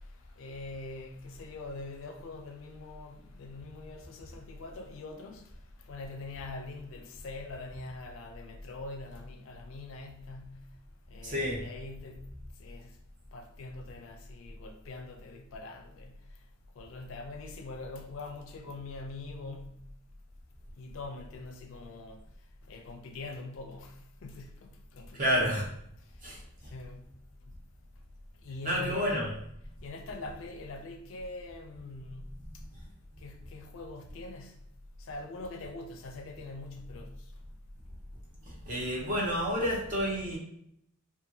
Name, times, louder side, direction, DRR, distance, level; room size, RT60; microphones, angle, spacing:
voice 1, 0.4-5.4 5.9-10.6 11.1-12.3 12.6-12.9 13.3-16.1 16.8-19.7 20.8-22.2 22.7-23.9 24.2-25.4 26.7-27.1 28.4-29.1 29.8-32.3 33.2-34.5 35.1-37.1, left 2 dB, 60° left, 0.4 m, -43 dB
voice 2, 11.2-11.7 25.1-25.7 26.2-26.4 28.6-29.4 38.5-40.4, equal, 35° right, 0.8 m, -30 dB
2.7 x 2.4 x 2.6 m
head